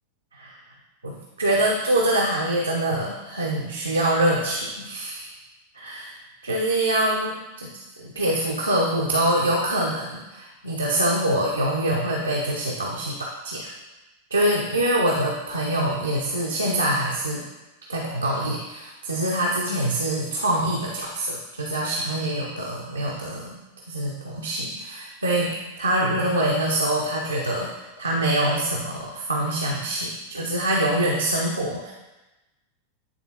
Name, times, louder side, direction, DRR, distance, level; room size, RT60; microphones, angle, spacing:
voice 1, 1.0-5.3 5.7-6.2 6.4-7.7 8.0-13.7 14.3-17.4 17.9-23.5 23.9-31.9, right 1 dB, 80° right, -3 dB, 0.8 m, -25 dB
9.4 x 3.6 x 2.9 m, 1.0 s
figure-of-eight pair, 90°, 0 cm